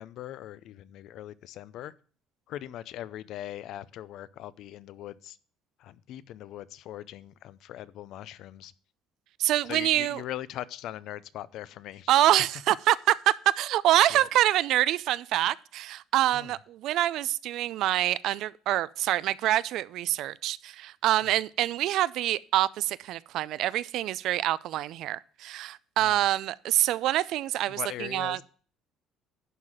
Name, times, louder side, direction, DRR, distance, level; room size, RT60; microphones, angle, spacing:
voice 1, 0.0-1.9 2.5-5.4 5.8-8.7 9.6-12.1 14.1-14.3 16.3-16.5 26.0-26.2 27.7-28.4, left 13 dB, 60° left, 0.5 m, -40 dB
voice 2, 9.4-10.2 12.1-28.4, right 14 dB, 60° right, 0.4 m, -26 dB
11.0 x 4.1 x 7.4 m
cardioid pair, 150°, 0 cm